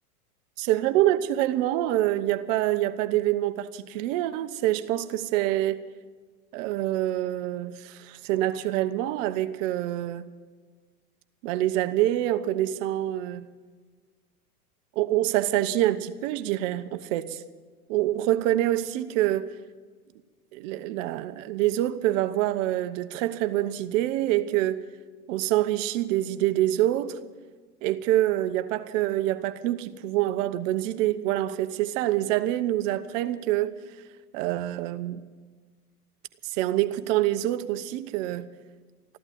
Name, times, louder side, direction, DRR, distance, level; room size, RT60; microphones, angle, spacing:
voice 1, 0.6-5.8 6.5-10.3 11.4-13.5 15.0-17.4 17.9-19.5 20.5-24.8 25.3-27.2 27.8-33.8 34.3-35.2 36.4-38.5, right 14 dB, 55° right, 1.1 m, -26 dB
15.0 x 12.0 x 7.8 m
hypercardioid pair, 100°, 46 cm